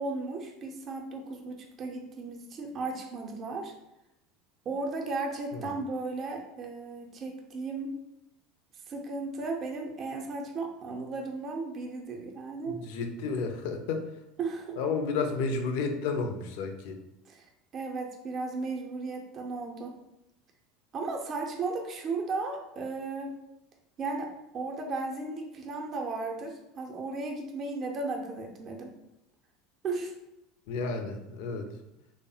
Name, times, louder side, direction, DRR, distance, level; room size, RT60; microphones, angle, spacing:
voice 1, 0.0-3.7 4.7-7.9 8.9-12.8 14.4-14.8 17.3-19.9 20.9-23.3 24.0-24.3 24.5-28.9 29.8-30.1, right 3 dB, 40° right, 2 dB, 0.5 m, -35 dB
voice 2, 12.6-14.1 14.8-17.0 30.7-31.7, left 4 dB, 60° left, 6 dB, 0.4 m, -32 dB
3.2 x 2.0 x 2.7 m, 0.88 s
figure-of-eight pair, 75°, 0 cm